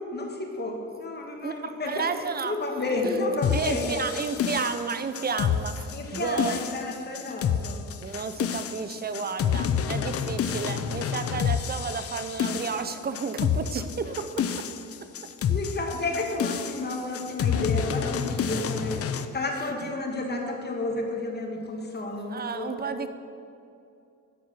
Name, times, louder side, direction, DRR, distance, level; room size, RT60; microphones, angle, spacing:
voice 1, 0.1-4.0 5.9-7.8 15.5-22.7, left 2 dB, 35° left, 2 dB, 1.8 m, -31 dB
voice 2, 1.4-2.5 3.0-6.6 8.0-14.7 18.4-18.6 22.3-23.1, right 5 dB, 30° right, 10 dB, 0.7 m, -32 dB
sound 1, 3.4-19.3, left 8 dB, 50° left, 0.6 m, -29 dB
12.0 x 4.5 x 7.6 m, 2.6 s
cardioid pair, 90°, 30 cm